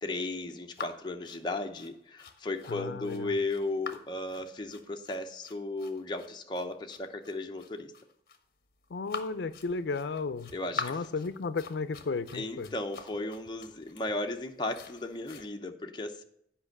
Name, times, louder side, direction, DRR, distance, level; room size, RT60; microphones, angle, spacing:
voice 1, 0.0-7.9 10.5-11.0 12.3-16.2, left 2 dB, 25° left, 3 dB, 0.7 m, -35 dB
sound 1, 0.7-15.4, left 4 dB, 55° left, 0.8 m, -45 dB
voice 2, 2.7-3.3 8.9-10.5 10.8-12.7, left 4 dB, 85° left, 14 dB, 0.4 m, -34 dB
8.7 x 5.2 x 6.6 m, 0.71 s
head